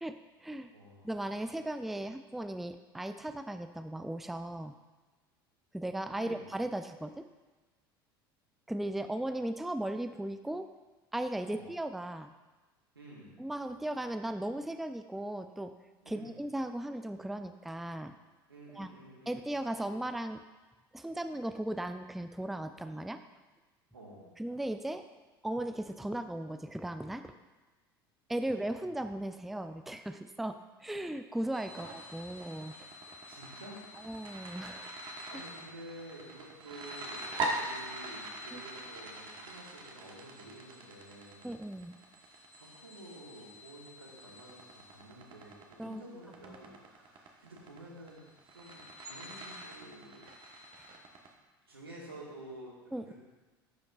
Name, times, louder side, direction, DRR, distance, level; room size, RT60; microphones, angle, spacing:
voice 1, 0.0-0.7 1.0-4.7 5.7-7.3 8.7-10.7 11.1-12.3 13.4-15.7 16.1-18.1 18.7-18.9 19.3-20.4 20.9-23.2 24.4-25.0 25.4-27.3 28.3-32.7 34.0-34.9 38.5-38.6 41.4-41.9 45.8-46.0 46.5-46.8 52.9-53.1, right 1 dB, ahead, 9 dB, 0.4 m, -37 dB
voice 2, 0.7-1.1 6.2-6.5 11.5-11.7 12.9-13.4 16.0-16.4 18.5-19.5 23.9-24.3 28.4-28.6 31.7-32.4 33.3-33.8 35.3-41.5 42.3-48.2 48.5-50.2 51.6-53.1, right 1 dB, 90° right, -4 dB, 1.6 m, -51 dB
sound 1, 31.5-51.3, right 2 dB, 45° right, 1.1 m, -43 dB
11.0 x 5.2 x 2.4 m, 1.3 s
hypercardioid pair, 70°, 12 cm